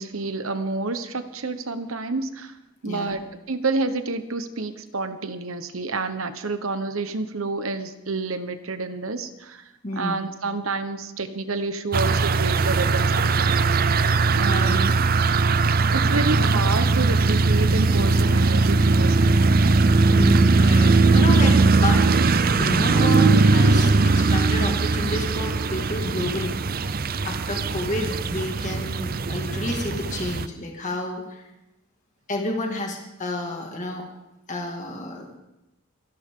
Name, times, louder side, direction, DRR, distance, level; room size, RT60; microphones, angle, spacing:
voice 1, 0.0-2.6 2.8-13.8 14.3-14.9 15.9-19.6, right 3 dB, 70° right, 10 dB, 1.2 m, -29 dB
voice 2, 2.8-3.2 9.8-10.2 14.5-14.8 20.1-26.6 27.2-31.4 32.3-34.0 34.5-35.3, left 1 dB, 35° left, 0 dB, 2.2 m, -30 dB
sound 1, 11.9-30.5, right 3 dB, 45° right, 0.6 m, -19 dB
26.5 x 11.5 x 3.8 m, 0.92 s
head